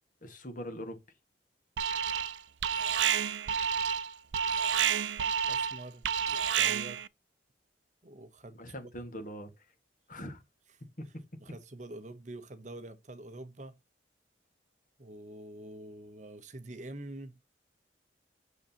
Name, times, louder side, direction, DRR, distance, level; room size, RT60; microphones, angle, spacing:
voice 1, 0.2-1.0 8.5-9.7 10.1-10.4 11.0-11.2, equal, 45° left, 1.7 m, -42 dB
Alarm, 1.8-2.4 2.6-7.1, right 8 dB, 75° right, 0.5 m, -29 dB
voice 2, 5.4-7.0 8.0-8.9 11.4-13.8 15.0-17.4, right 1 dB, 40° right, 0.9 m, -46 dB
8.0 x 6.3 x 2.9 m
head